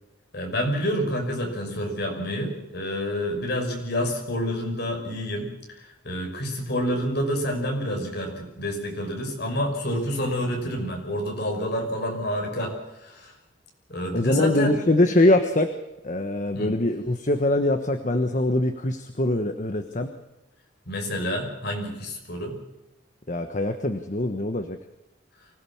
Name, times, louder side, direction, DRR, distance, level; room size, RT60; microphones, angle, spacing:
voice 1, 0.3-13.3 13.9-14.7 16.5-16.7 20.9-22.6, equal, 55° left, 2 dB, 5.7 m, -28 dB
voice 2, 14.1-20.1 23.3-24.8, left 1 dB, 40° left, 7 dB, 1.3 m, -23 dB
24.5 x 17.5 x 7.3 m, 0.97 s
head